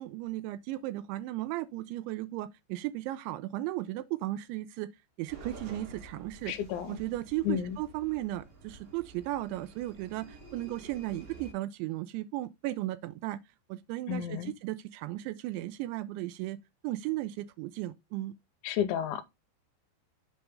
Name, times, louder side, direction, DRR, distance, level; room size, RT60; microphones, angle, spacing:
voice 1, 0.0-4.9 5.2-6.5 6.9-13.4 13.7-16.6 16.8-18.3, right 16 dB, 85° right, 2.8 m, -35 dB
sound 1, 5.3-11.5, right 3 dB, 65° right, 4.1 m, -50 dB
voice 2, 6.5-7.0 7.4-7.8 14.1-14.5 18.6-19.2, left 10 dB, 85° left, 3.0 m, -31 dB
7.8 x 3.3 x 5.2 m
omnidirectional pair, 5.4 m